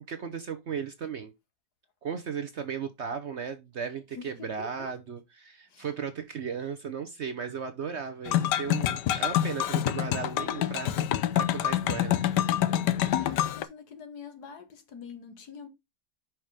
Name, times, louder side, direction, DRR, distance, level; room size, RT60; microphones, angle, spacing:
voice 1, 0.1-1.3 2.0-12.5 13.0-13.4, right 6 dB, 55° right, 0.8 m, -36 dB
voice 2, 4.2-4.9 5.7-5.9 13.0-15.7, left 6 dB, 70° left, 1.9 m, -45 dB
sound 1, 8.3-13.6, left 11 dB, 85° left, 1.3 m, -27 dB
5.9 x 4.6 x 4.8 m
omnidirectional pair, 1.8 m